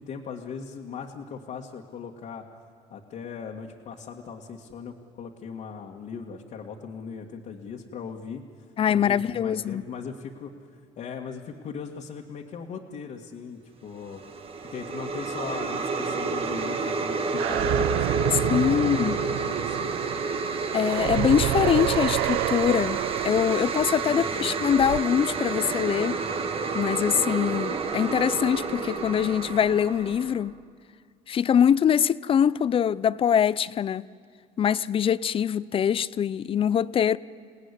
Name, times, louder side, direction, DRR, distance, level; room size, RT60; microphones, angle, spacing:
voice 1, 0.0-2.4 2.9-8.4 8.9-10.5 11.0-14.2 14.6-19.9 24.1-24.6, left 6 dB, 50° left, 1.9 m, -39 dB
voice 2, 8.8-9.8 18.5-19.2 20.7-23.0 23.2-26.2 26.7-30.6 31.3-34.1 34.6-37.2, left 8 dB, 35° left, 0.5 m, -23 dB
sound 1, 14.0-30.5, right 4 dB, 35° right, 1.6 m, -30 dB
sound 2, 17.4-25.0, right 16 dB, 80° right, 0.6 m, -29 dB
27.5 x 18.5 x 9.9 m
cardioid pair, 115°, 16 cm